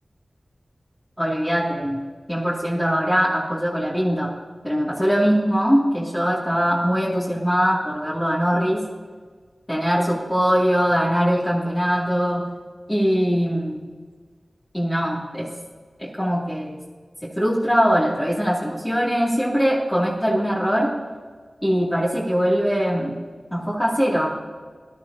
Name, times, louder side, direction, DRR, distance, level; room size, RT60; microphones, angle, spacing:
voice 1, 1.2-2.0 2.3-4.3 4.6-8.8 9.7-12.4 12.9-13.8 14.7-15.5 16.0-16.8 17.2-20.9 21.6-23.1 23.5-24.3, equal, 10° left, -7 dB, 2.7 m, -21 dB
18.5 x 11.5 x 2.9 m, 1.5 s
cardioid pair, 45°, 0 cm